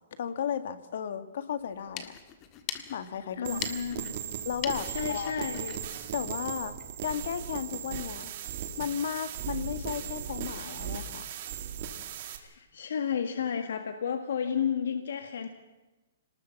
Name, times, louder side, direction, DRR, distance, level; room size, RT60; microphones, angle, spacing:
voice 1, 0.2-2.2 2.9-3.6 4.5-5.3 6.1-6.7 7.0-8.3 8.8-11.2, left 8 dB, 55° left, 11 dB, 1.9 m, -34 dB
sound 1, 1.7-7.0, left 9 dB, 20° left, 1.6 m, -42 dB
voice 2, 3.3-4.2 4.8-6.0 12.4-15.5, left 7 dB, 70° left, 7 dB, 1.7 m, -32 dB
sound 2, 3.4-12.4, right 9 dB, 35° right, 2.4 m, -37 dB
26.5 x 19.5 x 7.3 m, 1.1 s
hypercardioid pair, 170°, 0 cm